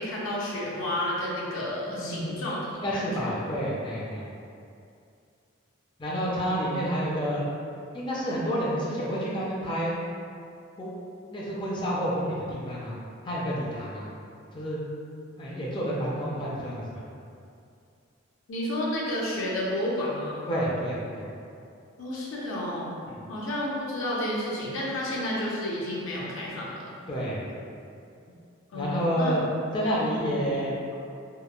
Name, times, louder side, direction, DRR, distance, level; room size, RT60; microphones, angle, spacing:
voice 1, 0.0-2.6 2.9-3.3 18.5-20.5 22.0-22.9 23.3-26.9 28.7-29.4 30.2-30.4, left 1 dB, 75° left, -5 dB, 0.5 m, -31 dB
voice 2, 1.9-2.4 2.8-4.2 6.0-7.4 7.9-10.0 10.8-10.9 11.3-12.9 13.2-14.1 14.5-14.8 15.4-17.0 20.5-21.3 23.1-23.2 27.1-27.5 28.7-29.4 29.7-30.7, equal, 25° left, -6 dB, 0.3 m, -29 dB
2.9 x 2.1 x 2.2 m, 2.5 s
head